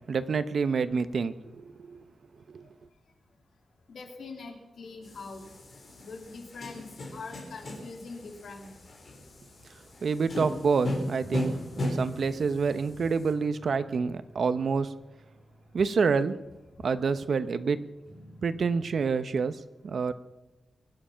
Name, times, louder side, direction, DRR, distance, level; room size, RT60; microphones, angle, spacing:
voice 1, 0.1-2.0 2.5-2.7 10.0-14.9 15.7-16.4 16.8-17.8 18.4-20.1, right 5 dB, 55° right, 12 dB, 0.8 m, -28 dB
voice 2, 3.9-5.5 6.0-8.7, left 3 dB, 70° left, 2 dB, 3.0 m, -43 dB
sound 1, 5.0-13.3, left 1 dB, 45° left, 4.2 m, -37 dB
sound 2, 11.2-16.1 16.5-17.3 18.1-19.1, right 1 dB, 25° right, 3.8 m, -52 dB
24.0 x 9.0 x 5.7 m, 1.0 s
wide cardioid pair, 165°, 0 cm